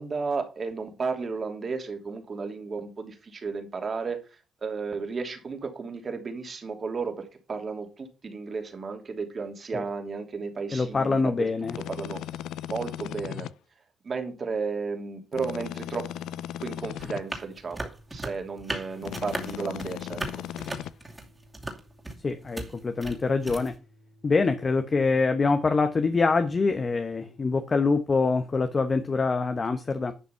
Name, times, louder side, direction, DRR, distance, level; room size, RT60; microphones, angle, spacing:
voice 1, 0.0-4.2 4.6-11.5 11.9-12.2 12.7-13.5 14.0-16.0 16.6-20.4, right 4 dB, 40° right, 2.7 m, -33 dB
voice 2, 10.7-11.8 22.2-23.8 24.2-30.1, left 4 dB, 35° left, 1.0 m, -25 dB
sound 1, 11.6-13.5 15.3-17.2 19.0-20.9, left 12 dB, 85° left, 0.4 m, -37 dB
sound 2, 17.0-23.8, right 2 dB, 15° right, 2.6 m, -37 dB
Organ, 17.2-27.5, equal, 65° right, 4.0 m, -58 dB
11.0 x 5.8 x 5.7 m
cardioid pair, 90°, 0 cm